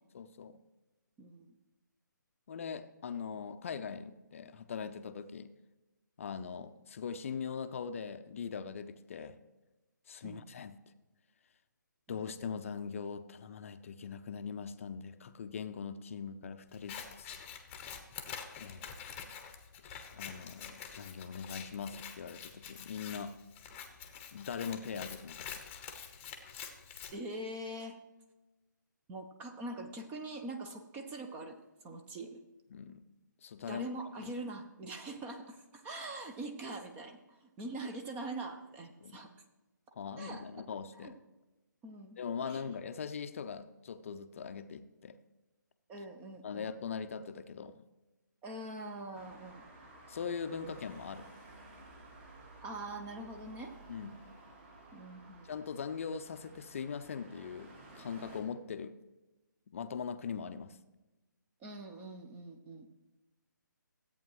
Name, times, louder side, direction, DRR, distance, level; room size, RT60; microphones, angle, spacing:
voice 1, 0.1-0.6 2.5-5.5 6.2-9.4 10.1-10.8 12.1-17.3 18.6-19.0 19.8-23.4 24.3-25.4 32.7-33.0 33.4-33.9 34.2-34.3 39.0-39.2 39.9-41.2 42.2-45.2 46.4-47.8 50.1-51.3 53.9-54.1 55.4-58.9 59.7-60.8, left 6 dB, 40° left, 11 dB, 0.6 m, -41 dB
voice 2, 1.2-1.5 10.2-10.5 12.1-12.2 27.1-28.0 29.1-31.6 31.8-32.4 33.7-39.3 40.2-40.4 40.9-41.1 41.8-42.6 45.9-46.7 48.4-49.7 52.6-53.7 54.9-55.5 61.6-62.9, right 2 dB, 15° right, 5 dB, 0.6 m, -43 dB
Scissors, 16.7-27.1, left 7 dB, 15° left, 0.9 m, -47 dB
Traffic noise roadway noise, 49.1-58.4, right 2 dB, 35° right, 2.0 m, -54 dB
14.0 x 8.5 x 3.1 m, 1.1 s
figure-of-eight pair, 155°, 11 cm